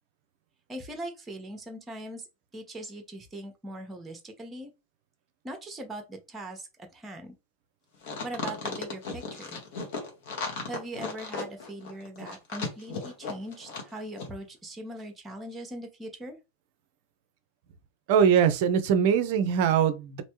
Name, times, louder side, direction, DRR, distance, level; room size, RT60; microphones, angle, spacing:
voice 1, 0.7-2.3 2.5-4.7 5.4-7.3 8.2-9.6 10.6-16.4, right 1 dB, 15° right, 0.8 m, -40 dB
sound 1, 8.0-13.9 14.2-14.3, left 4 dB, 50° left, 1.1 m, -35 dB
voice 2, 18.1-20.2, right 7 dB, 50° right, 0.5 m, -22 dB
3.2 x 2.5 x 3.0 m
figure-of-eight pair, 90°, 0 cm